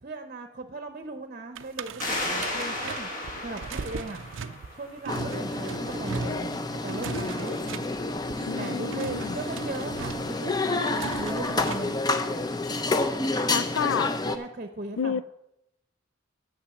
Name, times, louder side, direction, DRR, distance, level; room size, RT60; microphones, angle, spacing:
voice 1, 0.0-3.1 3.4-4.2 4.7-7.6 8.6-12.0 13.5-13.7 13.9-15.2, right 2 dB, 40° right, 0.8 m, -38 dB
sound 1, 1.5-12.0, right 5 dB, 70° right, 0.5 m, -39 dB
sound 2, 2.0-5.4, left 1 dB, 45° left, 1.9 m, -34 dB
sound 3, 5.1-14.4, left 2 dB, 20° left, 0.6 m, -29 dB
voice 2, 8.5-9.4 13.5-14.1 15.0-15.2, left 7 dB, 80° left, 0.4 m, -29 dB
8.7 x 6.8 x 7.1 m
head